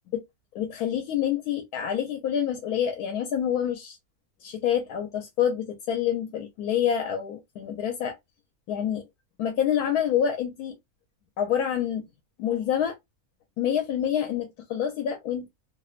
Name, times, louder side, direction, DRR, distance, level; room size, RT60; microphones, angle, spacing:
voice 1, 0.5-4.0 4.4-8.1 8.7-9.0 9.4-10.7 11.4-12.0 12.4-13.0 13.6-15.5, left 9 dB, 90° left, 1.1 m, -27 dB
2.8 x 2.1 x 2.3 m
omnidirectional pair, 1.6 m